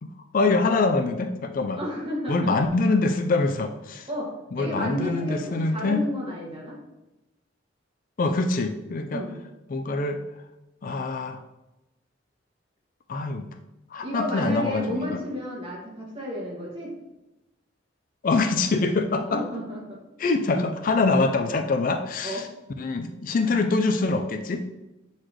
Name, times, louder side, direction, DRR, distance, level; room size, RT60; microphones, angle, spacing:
voice 1, 0.0-1.8 2.3-4.1 4.5-6.0 8.2-9.2 9.7-10.2 10.8-11.4 13.1-13.5 13.9-15.2 18.2-19.4 20.2-22.5 22.8-24.6, left 3 dB, 45° left, 7 dB, 0.4 m, -24 dB
voice 2, 1.7-2.5 4.1-4.3 4.6-6.8 9.1-9.3 14.0-16.9 19.2-20.0 22.2-22.5, equal, 30° right, -5 dB, 2.1 m, -32 dB
7.7 x 4.0 x 3.2 m, 0.97 s
head